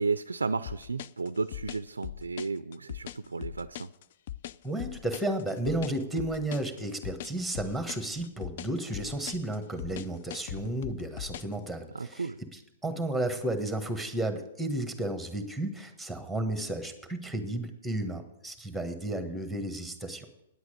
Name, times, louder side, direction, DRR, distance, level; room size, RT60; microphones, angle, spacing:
voice 1, 0.0-3.9 11.9-12.4, right 4 dB, 90° right, 14 dB, 0.3 m, -33 dB
sound 1, 0.7-11.6, left 12 dB, 55° left, 0.3 m, -40 dB
voice 2, 4.6-12.3 12.8-20.3, right 1 dB, ahead, 7 dB, 1.3 m, -33 dB
9.9 x 8.1 x 6.5 m, 0.88 s
hypercardioid pair, 120°, 0 cm